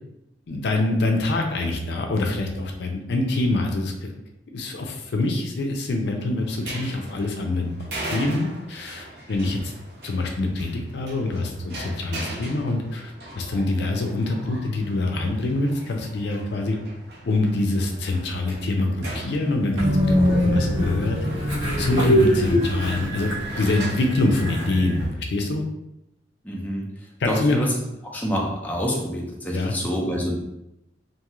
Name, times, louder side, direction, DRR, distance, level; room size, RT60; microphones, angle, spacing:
voice 1, 0.5-4.1 4.5-9.7 10.0-16.8 17.3-21.2 21.8-23.3 23.6-25.6 27.2-27.6 29.5-29.8, left 2 dB, 70° left, 2 dB, 0.4 m, -25 dB
sound 1, 6.4-25.1, right 1 dB, 65° right, 0.8 m, -40 dB
Train, 19.8-25.1, equal, 85° right, 1.3 m, -23 dB
voice 2, 26.4-27.7 28.0-30.4, equal, 10° left, -3 dB, 0.5 m, -27 dB
2.6 x 2.4 x 2.9 m, 0.86 s
head